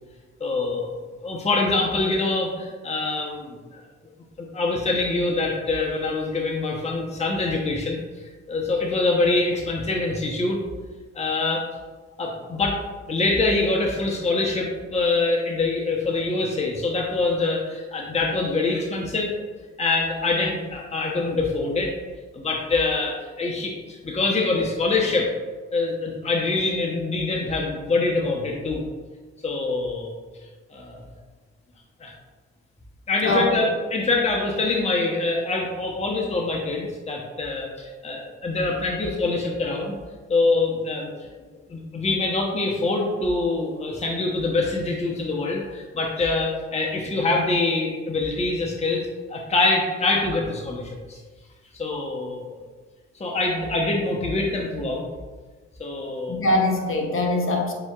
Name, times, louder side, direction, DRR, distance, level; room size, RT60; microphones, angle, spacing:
voice 1, 0.4-3.8 4.4-10.6 11.1-11.6 12.2-12.8 13.1-19.5 19.8-21.9 22.3-25.3 25.7-28.8 29.4-30.1 30.7-31.0 32.0-32.1 33.1-40.0 40.3-41.1 41.7-51.2 51.8-52.7 53.2-55.0 55.8-56.4, left 3 dB, 20° left, -1 dB, 0.8 m, -25 dB
voice 2, 33.2-33.7 56.3-57.7, left 1 dB, 40° left, 1 dB, 1.1 m, -22 dB
7.2 x 2.9 x 2.4 m, 1.3 s
hypercardioid pair, 45°, 32 cm